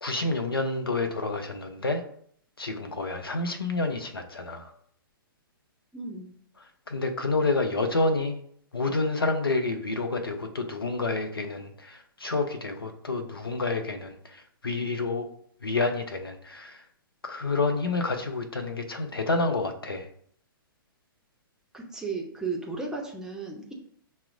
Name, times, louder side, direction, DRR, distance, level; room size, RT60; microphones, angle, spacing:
voice 1, 0.0-2.0 2.6-4.7 6.9-8.4 8.7-15.3 15.6-16.8 17.2-20.1, left 3 dB, 90° left, 5 dB, 0.5 m, -29 dB
voice 2, 5.9-6.3 21.7-23.7, right 4 dB, 5° right, -1 dB, 0.6 m, -34 dB
5.5 x 2.1 x 2.5 m, 0.62 s
figure-of-eight pair, 115°, 12 cm